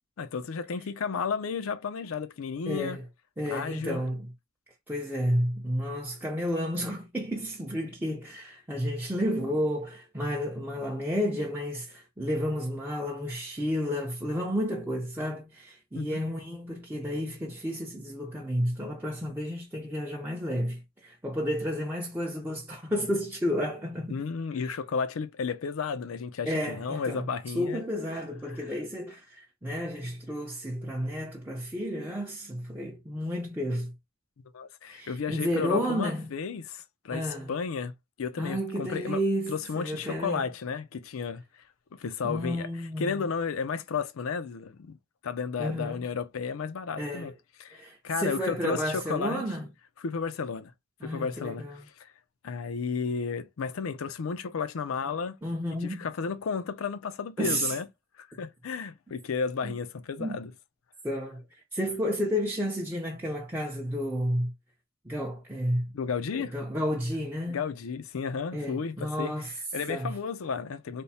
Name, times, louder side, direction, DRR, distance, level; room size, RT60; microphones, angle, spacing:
voice 1, 0.2-3.0 3.5-4.0 15.9-16.2 24.1-27.8 28.5-28.7 34.5-39.2 39.5-41.4 42.0-45.0 45.2-47.3 47.6-49.4 50.0-50.7 51.0-52.1 52.4-55.4 55.8-57.9 58.2-60.5 65.9-66.5 67.5-71.0, left 5 dB, 80° left, 0.5 m, -33 dB
voice 2, 2.7-3.0 3.4-4.3 4.9-24.2 26.5-27.3 27.5-33.9 34.9-36.3 37.1-37.5 38.4-40.5 42.2-43.3 45.6-46.0 47.0-47.3 47.7-49.7 51.0-51.8 55.4-56.1 57.4-57.8 59.6-59.7 60.2-60.4 61.0-61.4 61.7-64.5 65.0-65.9 66.3-67.6 68.5-69.5 69.9-70.1, equal, 10° right, 0.6 m, -31 dB
3.5 x 2.1 x 4.1 m
head